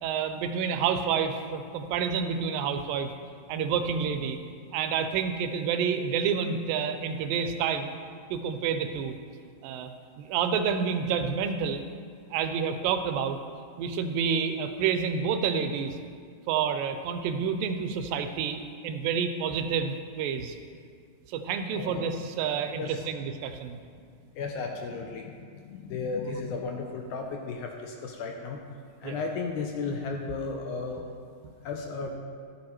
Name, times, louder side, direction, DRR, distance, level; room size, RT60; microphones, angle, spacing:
voice 1, 0.0-3.1 3.5-4.4 4.7-7.9 8.3-9.1 9.6-9.9 10.2-11.8 12.3-13.4 13.8-16.0 16.5-20.6 21.3-23.8 29.0-29.2, right 6 dB, 90° right, 8 dB, 2.3 m, -29 dB
voice 2, 21.7-22.0 22.8-23.1 24.4-28.6 29.0-31.0 31.6-32.2, left 4 dB, 80° left, 2 dB, 1.8 m, -34 dB
12.0 x 7.5 x 3.0 m, 2.2 s
omnidirectional pair, 3.9 m